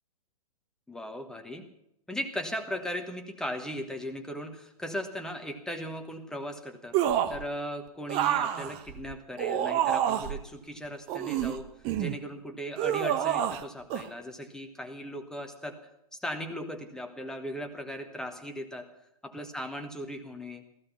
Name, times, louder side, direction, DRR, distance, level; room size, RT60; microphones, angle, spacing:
voice 1, 0.9-1.7 2.1-11.7 12.0-15.8 16.1-18.9 19.2-20.6, equal, 5° left, 6 dB, 1.2 m, -38 dB
sound 1, 6.9-7.4 8.1-10.4 11.1-12.2 12.8-13.6 13.9-14.1, right 10 dB, 30° right, 0.8 m, -28 dB
15.5 x 14.5 x 5.8 m, 0.81 s
figure-of-eight pair, 115°, 19 cm